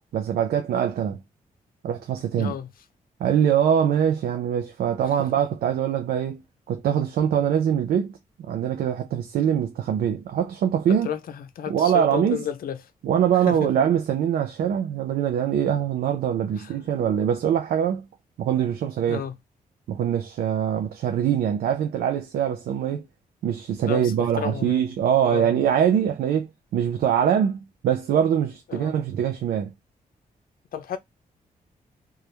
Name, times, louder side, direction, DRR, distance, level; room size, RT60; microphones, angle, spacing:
voice 1, 0.1-1.2 1.8-2.5 3.2-6.4 6.7-11.1 11.7-12.4 13.0-18.1 18.4-19.2 19.9-23.1 23.4-29.7, right 9 dB, 85° right, 0.4 m, -23 dB
voice 2, 2.4-2.7 11.0-12.8 13.5-13.7 16.6-16.7 19.1-19.4 23.9-24.8 25.2-25.6 28.7-28.9 30.7-31.0, left 8 dB, 70° left, 0.5 m, -31 dB
2.3 x 2.0 x 2.8 m
cardioid pair, 75°, 15 cm